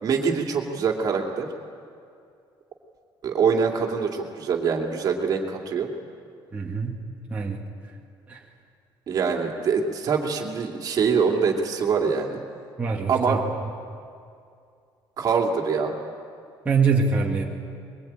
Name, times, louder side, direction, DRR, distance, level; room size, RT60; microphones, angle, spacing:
voice 1, 0.0-1.5 3.2-5.9 9.1-12.4 13.1-13.4 15.2-15.9, right 5 dB, 45° right, 1 dB, 2.6 m, -24 dB
voice 2, 6.5-7.0 7.3-7.6 8.3-8.4 12.8-13.4 16.6-17.4, right 4 dB, 15° right, -3 dB, 2.1 m, -24 dB
22.5 x 20.5 x 8.9 m, 2.4 s
cardioid pair, 145°, 9 cm